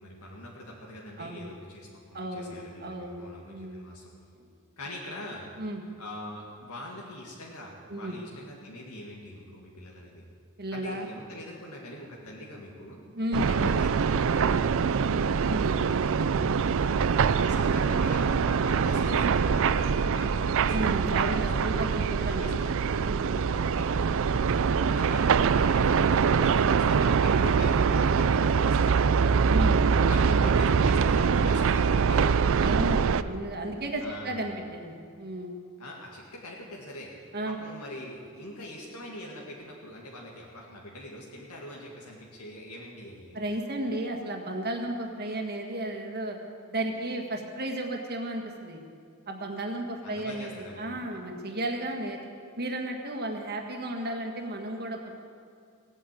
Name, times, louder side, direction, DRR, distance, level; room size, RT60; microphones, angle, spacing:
voice 1, 0.0-4.1 4.8-5.5 6.0-10.2 10.7-13.0 13.5-15.7 16.9-23.0 23.7-23.9 24.9-29.4 30.0-33.1 34.0-34.5 35.8-37.1 37.5-43.4 50.0-51.1, left 1 dB, 80° left, -2 dB, 2.2 m, -43 dB
voice 2, 1.2-1.5 2.1-2.5 2.8-3.9 5.6-5.8 7.9-8.1 10.6-11.1 13.1-13.6 15.5-16.0 16.3-16.6 20.7-22.6 23.0-23.4 29.5-29.8 32.6-35.5 37.3-37.6 43.3-46.4 46.7-48.8 49.3-52.2 52.6-55.1, right 1 dB, 45° right, 2 dB, 1.7 m, -33 dB
sound 1, 13.3-33.2, right 6 dB, 60° right, 0.4 m, -24 dB
17.5 x 9.0 x 8.5 m, 2.2 s
head